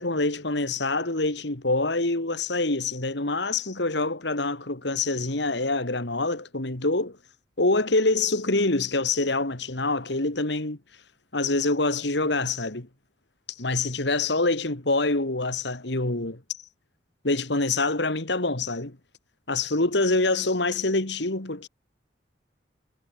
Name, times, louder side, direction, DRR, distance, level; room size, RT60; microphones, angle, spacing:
voice 1, 0.0-7.2 7.6-10.8 11.3-12.9 13.6-16.4 17.2-19.0 19.5-21.7, left 2 dB, 70° left, 2.4 m, -25 dB
head